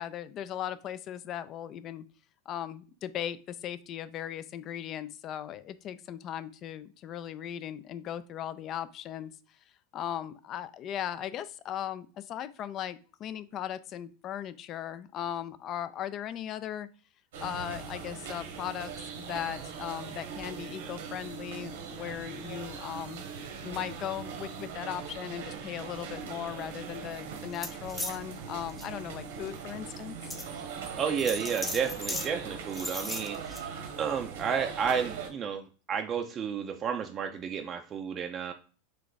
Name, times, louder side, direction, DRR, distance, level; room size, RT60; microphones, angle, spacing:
voice 1, 0.0-2.0 2.5-9.3 9.9-16.9 17.4-23.2 23.5-30.2, left 10 dB, 40° left, 14 dB, 0.3 m, -38 dB
sound 1, 17.3-35.3, right 6 dB, 80° right, 1.0 m, -41 dB
sound 2, 27.5-28.2 28.7-28.8 29.5-29.6 30.3-30.5 31.2-32.3 32.7-33.6, left 1 dB, 10° left, 0.7 m, -36 dB
voice 2, 31.0-33.4 33.7-38.5, right 7 dB, 35° right, 4 dB, 0.4 m, -32 dB
3.2 x 2.4 x 3.9 m, 0.37 s
hypercardioid pair, 105°, 0 cm